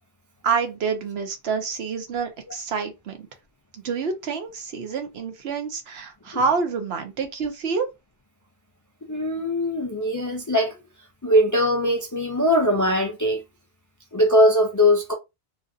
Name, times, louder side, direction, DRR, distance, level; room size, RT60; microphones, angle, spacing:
voice 1, 0.4-3.2 3.7-7.9, right 5 dB, 80° right, 1.0 m, -27 dB
voice 2, 9.1-10.7 11.2-13.4 14.1-15.1, left 1 dB, 30° left, 0.3 m, -20 dB
3.0 x 2.4 x 2.6 m
omnidirectional pair, 1.1 m